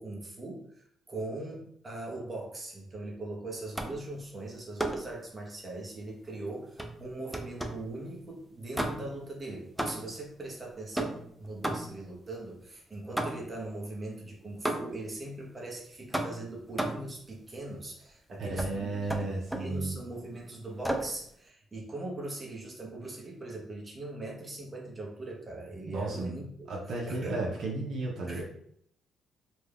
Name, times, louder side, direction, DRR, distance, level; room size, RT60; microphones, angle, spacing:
voice 1, 0.0-19.3 19.6-26.5 27.1-27.4 28.3-28.4, right 2 dB, 25° right, -2 dB, 0.9 m, -40 dB
sound 1, 3.8-4.1 4.8-5.2 6.8-7.9 8.7-9.3 9.8-10.3 11.0-12.1 13.2-13.6 14.7-15.1 16.1-17.2 18.6-18.8 19.1-19.8 20.8-21.2, right 1 dB, 5° right, 0.4 m, -34 dB
voice 2, 18.4-20.0 25.9-28.4, right 2 dB, 65° right, -2 dB, 0.6 m, -34 dB
2.6 x 2.2 x 3.4 m, 0.66 s
cardioid pair, 95°, 0 cm